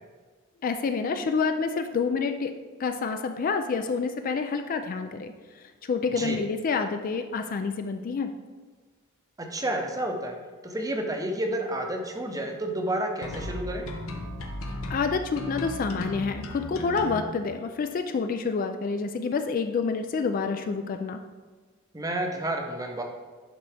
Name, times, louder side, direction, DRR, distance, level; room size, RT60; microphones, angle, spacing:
voice 1, 0.6-2.5 2.8-5.3 5.8-8.3 14.9-21.2, left 5 dB, 40° left, 7 dB, 0.3 m, -28 dB
voice 2, 9.4-10.4 10.6-13.8 17.0-17.1 21.9-23.0, right 1 dB, 15° right, 3 dB, 0.7 m, -30 dB
sound 1, 13.2-17.2, left 1 dB, 75° left, 0.8 m, -35 dB
11.0 x 4.0 x 3.4 m, 1.4 s
head